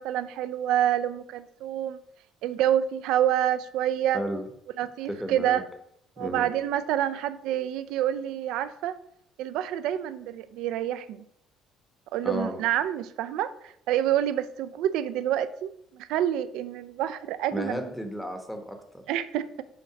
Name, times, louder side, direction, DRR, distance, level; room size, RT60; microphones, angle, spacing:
voice 1, 0.0-2.0 2.4-4.2 4.8-5.6 6.2-8.9 9.4-11.2 12.1-17.8 19.1-19.6, right 11 dB, 80° right, 13 dB, 0.4 m, -27 dB
voice 2, 4.1-4.4 5.1-5.6 6.2-6.5 12.2-12.6 17.5-19.0, equal, 5° left, 4 dB, 1.0 m, -33 dB
5.8 x 4.0 x 5.8 m, 0.73 s
cardioid pair, 110°, 0 cm